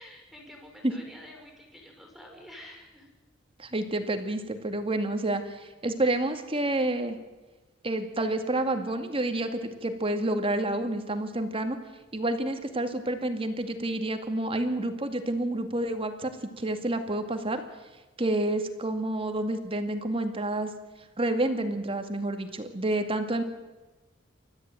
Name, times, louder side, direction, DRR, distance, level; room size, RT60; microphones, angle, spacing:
voice 1, 0.0-3.1, left 1 dB, ahead, 1 dB, 6.0 m, -48 dB
voice 2, 3.6-7.2 7.8-11.8 12.1-16.3 16.6-17.6 18.2-20.7 21.2-23.4, right 1 dB, 30° right, 7 dB, 2.2 m, -29 dB
29.5 x 14.0 x 9.2 m, 1.2 s
head